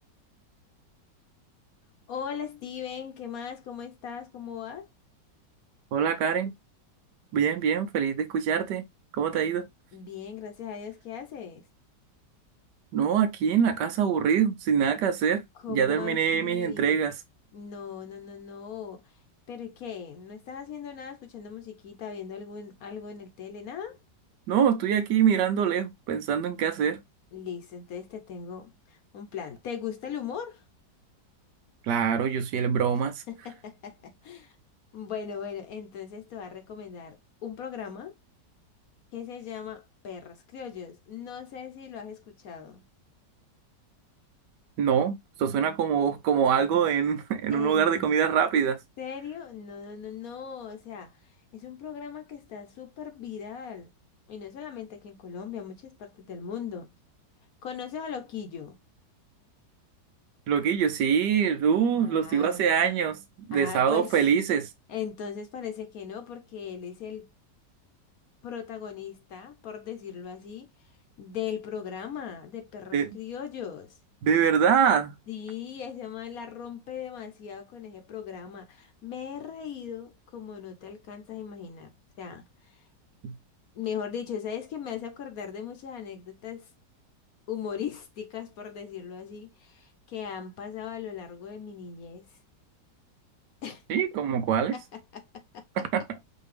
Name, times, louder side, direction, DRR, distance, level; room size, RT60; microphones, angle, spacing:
voice 1, 2.1-4.9 9.3-9.5 9.9-11.6 15.6-17.0 17.5-19.2 19.5-24.0 27.3-30.6 33.3-34.6 34.9-38.1 39.1-42.8 47.5-48.1 49.0-53.9 54.3-56.9 57.6-58.8 61.9-62.7 63.5-64.2 64.9-67.3 68.4-70.7 71.2-74.0 75.3-81.9 82.2-82.8 83.7-86.7 87.5-92.4 93.6-93.8 94.7-95.7, left 8 dB, 65° left, 1.0 m, -39 dB
voice 2, 5.9-6.5 7.3-8.8 9.1-9.7 12.9-15.4 15.7-17.1 24.5-27.0 31.8-33.2 44.8-48.8 60.5-63.2 63.5-64.7 72.9-73.1 74.2-75.1 83.2-83.3 93.9-94.8 95.8-96.0, right 7 dB, 75° right, 1.3 m, -24 dB
5.0 x 2.7 x 3.2 m
omnidirectional pair, 1.9 m